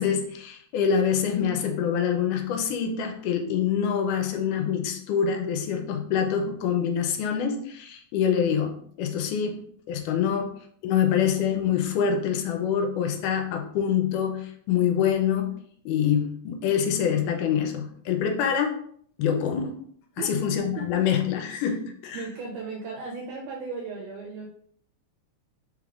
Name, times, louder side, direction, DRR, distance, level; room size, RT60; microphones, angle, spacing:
voice 1, 0.0-9.6 9.9-10.5 10.8-15.5 15.9-18.8 19.2-19.7 20.2-22.3, left 8 dB, 85° left, 4 dB, 2.1 m, -25 dB
voice 2, 22.1-24.5, right 4 dB, 80° right, -2 dB, 2.2 m, -36 dB
4.9 x 3.5 x 2.4 m, 0.62 s
omnidirectional pair, 3.6 m